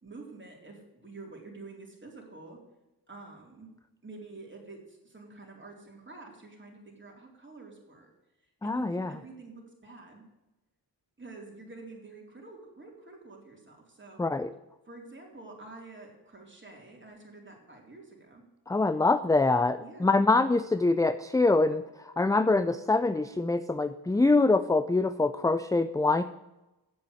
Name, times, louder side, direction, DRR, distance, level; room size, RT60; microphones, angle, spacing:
voice 1, 0.0-2.6 3.1-3.7 4.0-8.1 8.6-10.2 11.2-14.3 14.9-18.4 19.8-20.3, right 3 dB, 25° right, -1 dB, 4.0 m, -48 dB
voice 2, 8.6-9.1 14.2-14.5 18.7-26.2, left 3 dB, 10° left, 12 dB, 0.4 m, -25 dB
8.8 x 7.5 x 8.3 m, 0.98 s
cardioid pair, 55°, 42 cm